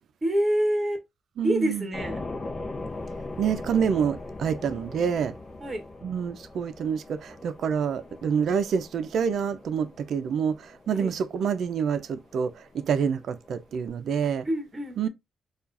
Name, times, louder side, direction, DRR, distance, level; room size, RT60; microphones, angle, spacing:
voice 1, 0.2-1.0 1.4-2.2 5.6-5.8 11.0-11.1 14.4-15.1, right 1 dB, 20° right, 1.1 m, -26 dB
voice 2, 1.4-1.9 3.4-5.3 6.0-14.5 15.0-15.1, right 7 dB, 65° right, 0.5 m, -27 dB
sound 1, 1.9-13.9, left 2 dB, 35° left, 0.8 m, -41 dB
4.6 x 2.4 x 2.5 m
cardioid pair, 120°, 0 cm